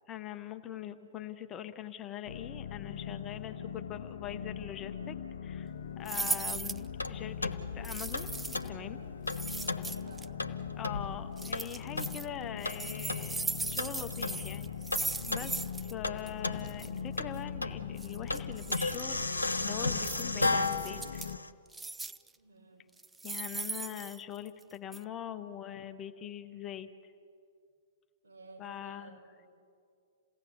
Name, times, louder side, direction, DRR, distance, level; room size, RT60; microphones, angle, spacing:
voice 1, 0.1-5.2 5.4-9.0 10.8-14.7 15.3-21.3 23.2-26.9 28.6-29.2, left 10 dB, 25° left, 9 dB, 1.0 m, -42 dB
sound 1, 2.3-21.4, left 7 dB, 65° left, 0.7 m, -42 dB
sound 2, 6.1-6.9 7.8-8.7 9.3-10.3 11.4-12.3 12.6-15.9 16.2-16.3 16.6-16.9 18.0-19.0 20.0-20.2 20.6-21.3 21.7-22.3 23.0-24.6 24.9-25.0, right 3 dB, 10° right, 0.5 m, -38 dB
sound 3, 6.5-21.5, left 2 dB, 85° left, 1.1 m, -36 dB
voice 2, 9.4-10.5 22.4-22.9 28.2-29.5, right 3 dB, 65° right, 0 dB, 5.3 m, -55 dB
28.5 x 17.0 x 7.2 m, 2.4 s
figure-of-eight pair, 110°, 0 cm